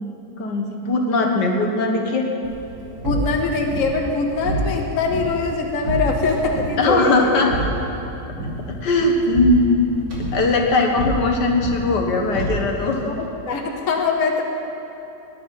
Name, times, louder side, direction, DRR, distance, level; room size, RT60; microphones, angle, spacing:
voice 1, 0.4-2.3 6.8-7.5 8.7-9.8 10.3-13.1, left 2 dB, 75° left, 2 dB, 2.0 m, -19 dB
sound 1, 2.4-13.0, right 1 dB, 60° right, 3.3 m, -29 dB
voice 2, 3.0-7.5 13.0-14.4, left 4 dB, 50° left, 2 dB, 1.5 m, -23 dB
19.0 x 10.0 x 5.7 m, 2.9 s
omnidirectional pair, 1.9 m